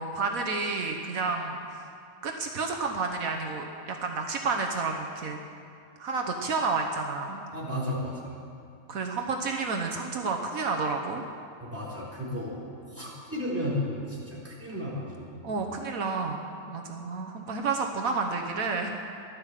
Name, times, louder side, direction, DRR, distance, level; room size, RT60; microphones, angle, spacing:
voice 1, 0.0-1.9 2.2-5.4 6.0-7.4 8.9-11.2 14.7-14.9 15.4-16.4 16.7-18.9, right 4 dB, 75° right, 2 dB, 1.5 m, -30 dB
voice 2, 7.5-8.4 11.6-12.6 12.9-15.6, left 1 dB, 10° right, -6 dB, 4.1 m, -34 dB
15.0 x 12.0 x 7.5 m, 2.4 s
omnidirectional pair, 1.5 m